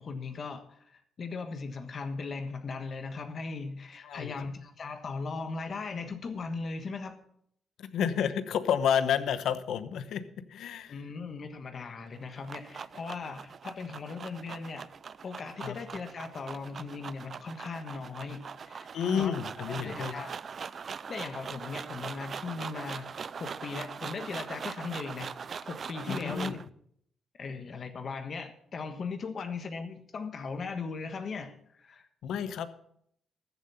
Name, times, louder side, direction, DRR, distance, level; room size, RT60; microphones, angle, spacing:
voice 1, 0.0-7.2 10.9-14.9 15.2-18.9 19.2-19.3 19.6-20.3 20.8-23.1 23.4-25.3 25.6-26.6 27.4-32.1, left 4 dB, 45° left, 8 dB, 1.3 m, -38 dB
voice 2, 4.0-4.3 7.8-10.2 10.5-11.0 15.6-15.8 18.9-20.1 26.1-26.6 32.2-32.7, left 8 dB, 80° left, 12 dB, 1.0 m, -30 dB
sound 1, 12.1-26.7, right 6 dB, 45° right, 0.4 m, -41 dB
14.5 x 7.7 x 5.7 m, 0.68 s
cardioid pair, 120°, 0 cm